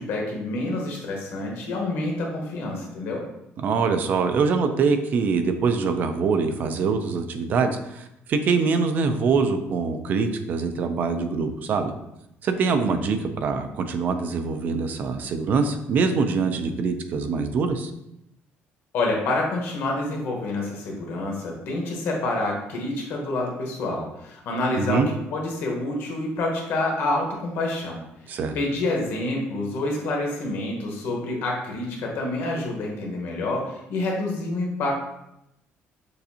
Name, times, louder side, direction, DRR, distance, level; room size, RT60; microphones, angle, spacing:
voice 1, 0.0-3.2 18.9-28.0 28.5-34.9, left 2 dB, 60° left, -1 dB, 1.1 m, -27 dB
voice 2, 3.6-11.9 12.4-17.9 24.8-25.1 28.3-28.6, right 5 dB, 45° right, 8 dB, 0.4 m, -24 dB
6.7 x 2.6 x 2.7 m, 0.83 s
cardioid pair, 175°, 4 cm